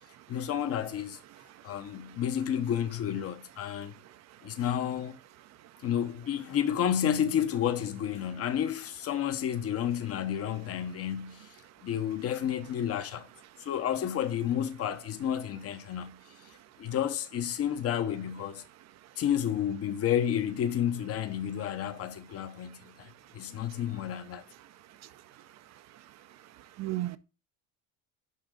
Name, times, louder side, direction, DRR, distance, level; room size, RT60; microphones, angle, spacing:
voice 1, 0.3-1.2 1.6-3.9 4.4-5.2 5.8-11.5 11.8-13.3 13.6-16.2 16.8-18.6 19.2-24.4, left 9 dB, 40° left, 0.9 m, -31 dB
voice 2, 26.8-27.2, right 16 dB, 45° right, 0.6 m, -34 dB
11.0 x 4.5 x 3.7 m
cardioid pair, 145°, 37 cm